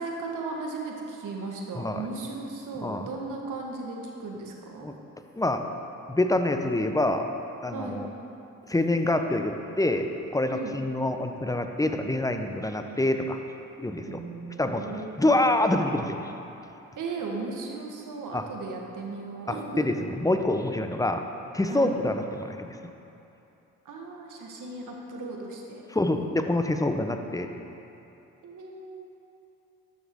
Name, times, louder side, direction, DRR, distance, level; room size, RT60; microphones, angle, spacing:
voice 1, 0.0-4.9 7.7-8.0 10.5-10.7 14.1-15.3 17.0-20.0 21.7-22.0 23.8-25.8 28.4-29.0, right 3 dB, 65° right, 0 dB, 1.4 m, -36 dB
voice 2, 6.1-7.3 7.6-8.1 8.7-13.4 13.8-14.2 14.6-14.9 15.2-16.2 18.3-18.4 19.5-21.2 21.5-22.7 25.9-27.5, left 1 dB, 10° left, 6 dB, 0.7 m, -26 dB
12.5 x 6.2 x 3.6 m, 2.8 s
supercardioid pair, 50°, 33 cm